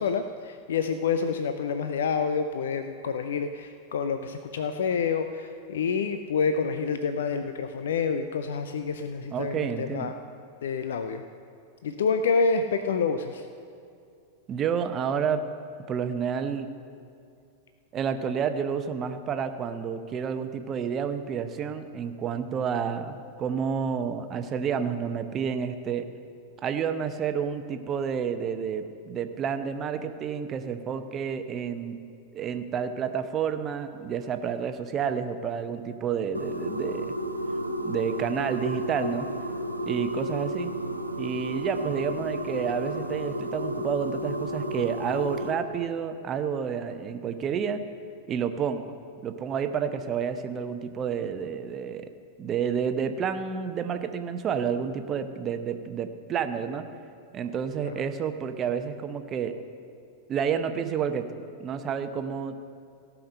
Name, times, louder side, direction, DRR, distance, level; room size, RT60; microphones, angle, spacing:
voice 1, 0.0-10.1 10.6-11.2 11.8-13.5 57.8-58.1, left 5 dB, 60° left, 8 dB, 0.5 m, -28 dB
voice 2, 9.3-10.1 14.5-15.4 15.9-16.7 17.9-26.0 26.6-32.0 32.3-37.1 37.8-39.3 39.8-40.7 41.2-47.8 48.3-48.8 49.2-52.1 52.4-56.8 57.3-59.5 60.3-61.2 61.6-62.6, right 7 dB, 30° right, 8 dB, 0.8 m, -30 dB
sound 1, 36.3-45.5, equal, 90° right, 0.8 m, -32 dB
16.5 x 6.0 x 6.5 m, 2.5 s
figure-of-eight pair, 90°, 0 cm